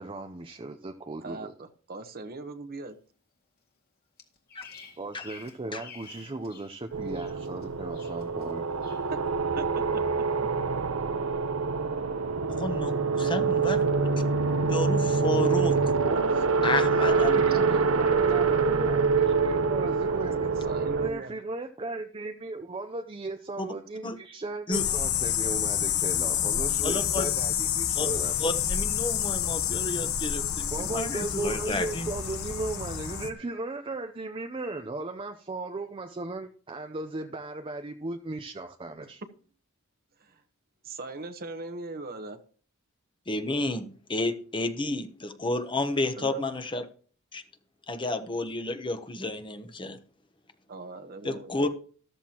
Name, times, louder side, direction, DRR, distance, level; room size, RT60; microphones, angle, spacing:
voice 1, 0.0-1.5 5.0-8.6 16.0-16.3 16.6-20.5 21.0-28.4 30.7-39.2, right 2 dB, 25° right, 0.6 m, -36 dB
voice 2, 1.2-3.0 9.1-9.2 9.6-10.0 16.1-16.5 16.9-18.7 20.6-21.3 40.2-40.4 40.8-42.4 46.2-46.4 50.7-51.5, right 2 dB, 45° right, 1.1 m, -39 dB
Bird vocalization bird call bird song, 4.2-6.7 7.0-7.6 7.9-8.5 8.8-9.1, left 6 dB, 50° left, 2.1 m, -49 dB
sound 1, 6.9-21.1, right 5 dB, 80° right, 0.8 m, -25 dB
voice 3, 12.6-13.8 14.7-15.9 16.6-17.4 23.6-23.7 24.0-24.2 24.7-24.8 26.8-27.3 27.9-28.1 28.4-32.1 43.3-46.8 47.3-47.4 47.9-50.0 51.2-51.7, left 2 dB, 25° left, 1.0 m, -31 dB
sound 2, 24.7-33.3, left 9 dB, 85° left, 1.0 m, -28 dB
13.5 x 13.0 x 3.0 m
head